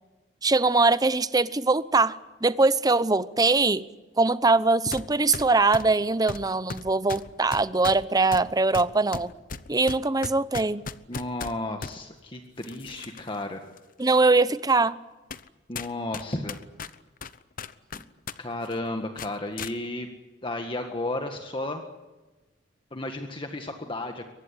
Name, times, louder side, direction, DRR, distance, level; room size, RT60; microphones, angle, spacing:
voice 1, 0.4-3.8 4.2-9.3 9.7-10.8 14.0-15.0, right 3 dB, 20° right, 16 dB, 0.8 m, -22 dB
sound 1, 4.9-5.1 5.3-12.0 12.6-13.4 13.8-13.9 14.6-14.7 15.3-15.5 15.8-18.4 18.6-18.8 19.2-19.7, left 4 dB, 50° left, 0.9 m, -37 dB
voice 2, 11.1-13.6 15.7-16.6 17.9-18.0 18.4-20.1 20.4-21.8 22.9-24.3, left 2 dB, 30° left, 5 dB, 1.7 m, -33 dB
23.0 x 19.0 x 9.8 m, 1.2 s
head